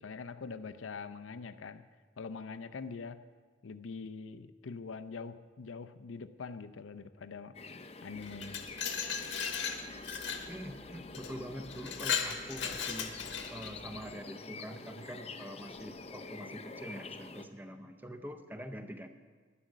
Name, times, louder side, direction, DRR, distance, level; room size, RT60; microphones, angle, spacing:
voice 1, 0.0-1.8 2.2-3.2 3.6-7.6 8.0-8.7, left 4 dB, 90° left, 11 dB, 0.6 m, -43 dB
sound 1, 7.5-17.5, left 3 dB, 30° left, 0.5 m, -47 dB
Glass, 8.2-10.5 11.1-11.3 11.7-13.7, left 7 dB, 70° left, 1.2 m, -36 dB
voice 2, 10.5-13.2 13.5-19.1, equal, 10° right, 7 dB, 0.6 m, -45 dB
11.5 x 10.5 x 6.3 m, 1.5 s
head